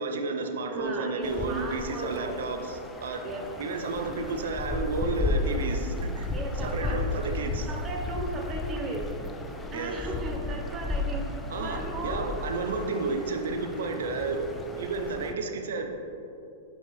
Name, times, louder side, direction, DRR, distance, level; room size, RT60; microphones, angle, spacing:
voice 1, 0.0-3.2 3.6-6.3 6.5-7.7 9.7-10.0 11.5-15.9, right 3 dB, 75° right, 5 dB, 0.6 m, -32 dB
voice 2, 0.7-2.4 3.2-3.4 6.3-7.0 7.7-9.1 9.7-11.3 11.6-12.3, right 2 dB, 30° right, 1 dB, 0.9 m, -36 dB
sound 1, 1.2-15.3, left 2 dB, 15° left, 0.5 m, -34 dB
6.1 x 5.4 x 3.2 m, 2.6 s
hypercardioid pair, 115°, 0 cm